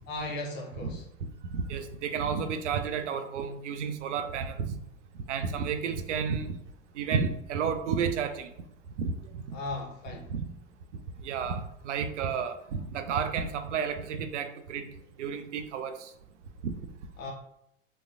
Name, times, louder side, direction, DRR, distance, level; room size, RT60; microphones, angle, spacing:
voice 1, 0.1-1.0 9.5-10.3 17.2-17.3, left 2 dB, 25° left, 1 dB, 0.6 m, -36 dB
voice 2, 1.2-4.8 5.3-6.6 6.9-8.5 9.0-9.6 10.3-10.4 11.2-14.9 15.2-16.1 16.6-16.7, right 6 dB, 65° right, 9 dB, 0.5 m, -31 dB
3.9 x 2.2 x 2.5 m, 0.79 s
figure-of-eight pair, 85°, 40 cm